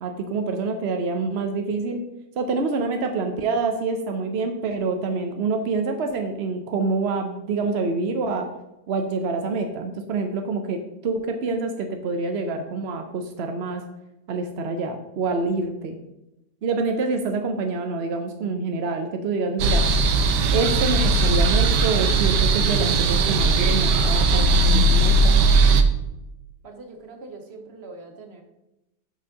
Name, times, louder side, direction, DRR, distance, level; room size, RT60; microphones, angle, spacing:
voice 1, 0.0-2.0 2.4-8.5 8.9-13.8 14.3-16.0 16.6-19.9 20.5-25.4, right 3 dB, 65° right, 5 dB, 0.6 m, -26 dB
sound 1, 19.6-25.8, right 3 dB, 80° right, 1.3 m, -18 dB
voice 2, 26.6-28.4, right 3 dB, 40° right, 4 dB, 1.1 m, -42 dB
6.2 x 5.3 x 5.8 m, 0.93 s
omnidirectional pair, 1.9 m